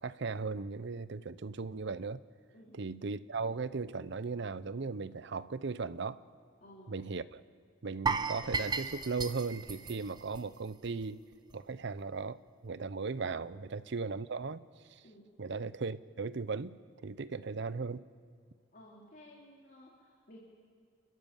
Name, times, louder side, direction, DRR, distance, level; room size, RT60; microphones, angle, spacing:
voice 1, 0.0-2.2 2.7-6.2 6.9-7.4 7.8-11.2 11.5-14.6 14.9-15.0 15.4-16.8 17.0-18.0, right 4 dB, 65° right, 16 dB, 0.6 m, -37 dB
voice 2, 6.6-6.9 13.6-13.7 15.0-15.3 18.7-20.4, left 1 dB, 50° left, -3 dB, 3.1 m, -55 dB
sound 1, 8.1-11.1 11.3-11.5 12.0-12.1, right 4 dB, 20° right, 0.8 m, -35 dB
29.5 x 12.5 x 7.3 m, 2.1 s
head